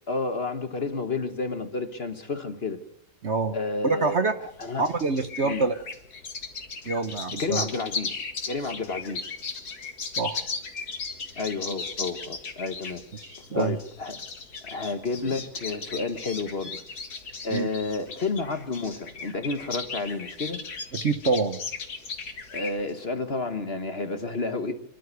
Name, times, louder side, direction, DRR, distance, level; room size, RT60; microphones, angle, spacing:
voice 1, 0.1-2.8 3.5-4.3 4.6-4.9 5.4-5.6 7.4-8.2 8.5-9.2 11.4-13.0 13.5-14.2 14.6-16.8 17.4-20.6 22.5-24.7, left 3 dB, 40° left, 1.3 m, -30 dB
voice 2, 3.2-3.6 3.8-4.3 4.8-5.7 6.9-7.7 10.0-10.4 13.2-13.8 17.5-17.7 20.9-21.6, right 4 dB, 45° right, 1.2 m, -26 dB
sound 1, 4.4-22.9, left 4 dB, 65° left, 2.5 m, -37 dB
27.5 x 12.0 x 8.1 m
omnidirectional pair, 1.8 m